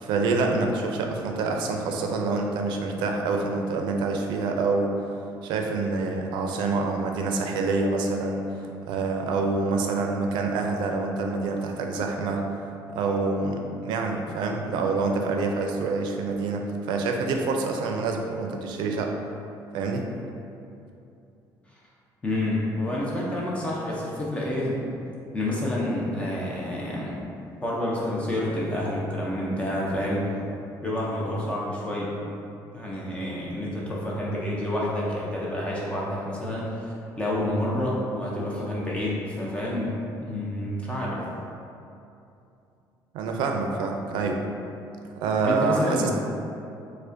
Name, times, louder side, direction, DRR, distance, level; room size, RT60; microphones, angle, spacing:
voice 1, 0.0-4.9 5.4-12.4 12.9-19.2 19.7-20.1 43.1-44.4 45.2-46.1, right 3 dB, 75° right, 2 dB, 0.4 m, -26 dB
voice 2, 22.2-24.8 25.3-27.1 27.6-30.3 30.8-32.2 32.7-41.2 45.4-46.1, left 1 dB, 15° left, -5 dB, 0.4 m, -28 dB
4.8 x 2.1 x 2.5 m, 2.7 s
cardioid pair, 165°, 8 cm